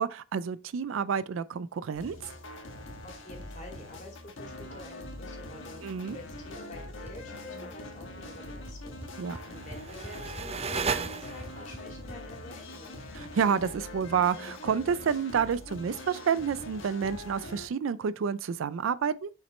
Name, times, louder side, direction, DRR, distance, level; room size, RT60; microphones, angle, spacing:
voice 1, 0.0-2.2 5.8-6.2 9.2-9.4 13.1-19.3, right 7 dB, 80° right, 0.4 m, -29 dB
sound 1, 1.9-17.7, left 1 dB, 75° left, 1.3 m, -43 dB
voice 2, 3.0-13.0, left 1 dB, 40° left, 2.6 m, -48 dB
sound 2, 7.1-7.4 7.7-8.1 8.3-8.4 8.7-12.2, equal, 10° right, 1.6 m, -46 dB
sound 3, 9.4-11.7, right 5 dB, 30° right, 0.6 m, -34 dB
7.3 x 5.8 x 3.2 m
head